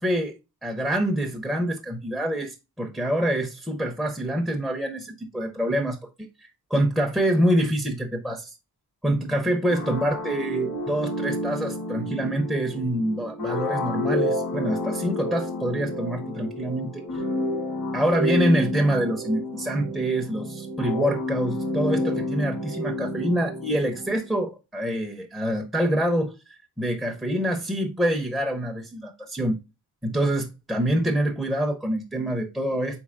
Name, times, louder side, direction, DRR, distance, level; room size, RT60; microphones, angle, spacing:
voice 1, 0.0-6.0 6.4-8.5 9.0-17.1 17.9-26.3 26.8-29.6 30.0-33.0, right 1 dB, ahead, 0.6 m, -26 dB
sound 1, 9.7-24.2, left 1 dB, 80° left, 2.5 m, -30 dB
4.4 x 3.8 x 2.4 m
wide cardioid pair, 155°, 36 cm